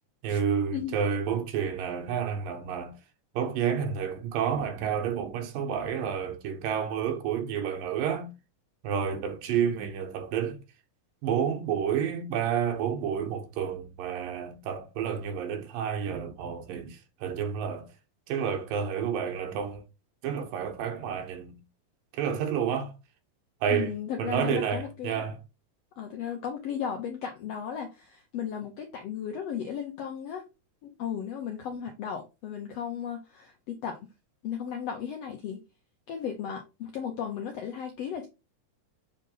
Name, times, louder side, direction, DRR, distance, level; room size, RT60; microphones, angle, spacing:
voice 1, 0.2-3.0 3.3-8.3 8.8-10.6 11.2-17.9 18.3-19.8 20.2-21.6 22.1-22.9 23.6-23.9 24.2-25.4, right 7 dB, 80° right, 2.8 m, -30 dB
voice 2, 23.7-25.2 26.0-30.4 30.8-34.0 34.4-35.6 36.1-38.3, left 8 dB, 75° left, 1.5 m, -35 dB
7.7 x 3.8 x 3.9 m
omnidirectional pair, 4.0 m